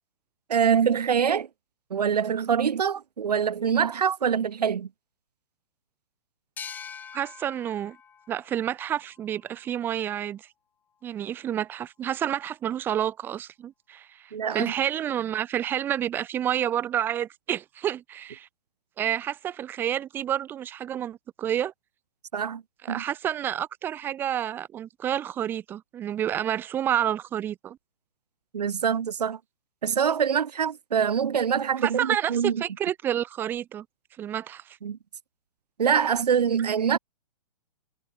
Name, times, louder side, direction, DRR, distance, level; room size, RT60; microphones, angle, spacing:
voice 1, 0.5-1.5 1.9-4.9 14.3-14.7 22.3-22.6 22.9-23.0 28.5-29.4 29.8-32.6 34.8-35.0 35.8-37.0, right 7 dB, 80° right, 5.6 m, -24 dB
sound 1, 6.6-9.9, left 7 dB, 10° left, 6.7 m, -45 dB
voice 2, 7.1-8.0 8.3-10.4 11.0-18.5 19.0-21.7 22.8-27.8 31.8-33.8 34.2-34.8, right 10 dB, 10° right, 1.5 m, -29 dB
hypercardioid pair, 175°, 20 cm